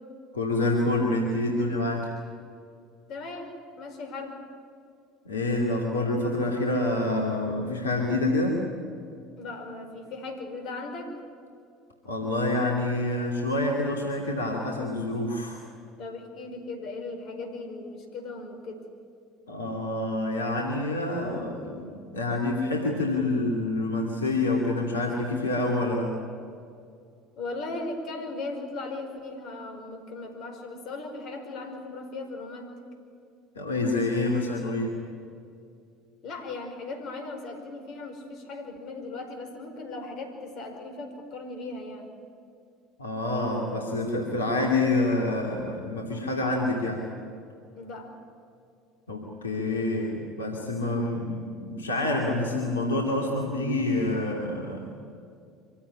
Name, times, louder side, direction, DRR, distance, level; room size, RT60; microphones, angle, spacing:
voice 1, 0.3-2.1 5.2-8.7 12.0-15.6 19.5-26.1 33.5-35.0 43.0-47.1 49.1-54.9, left 2 dB, 85° left, 0 dB, 2.7 m, -27 dB
voice 2, 3.1-4.4 9.4-11.2 16.0-18.8 27.4-32.7 36.2-42.1 47.7-48.1, left 3 dB, 55° left, 5 dB, 5.1 m, -37 dB
25.5 x 16.0 x 9.9 m, 2.4 s
hypercardioid pair, 70°, 0 cm